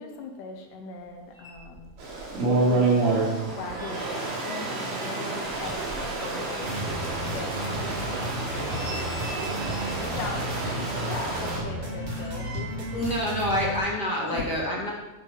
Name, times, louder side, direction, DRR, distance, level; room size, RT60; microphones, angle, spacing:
voice 1, 0.0-1.9 2.4-6.7 7.3-8.2 8.4-8.9 10.0-10.5 11.1-13.1 14.3-14.8, left 4 dB, 75° left, 2 dB, 3.1 m, -39 dB
sound 1, 1.1-1.2 1.3-2.3 2.6-6.6 6.9-7.0 7.6-7.7 8.2-10.2 11.0-13.0 13.3-13.5, right 2 dB, 5° right, 2.5 m, -44 dB
Stream, 2.0-11.6, right 3 dB, 75° right, 4.1 m, -29 dB
sound 2, 6.6-13.8, equal, 45° right, 3.7 m, -33 dB
voice 2, 12.9-14.9, equal, 40° left, -4 dB, 1.7 m, -27 dB
12.0 x 7.1 x 5.7 m, 1.1 s
omnidirectional pair, 3.9 m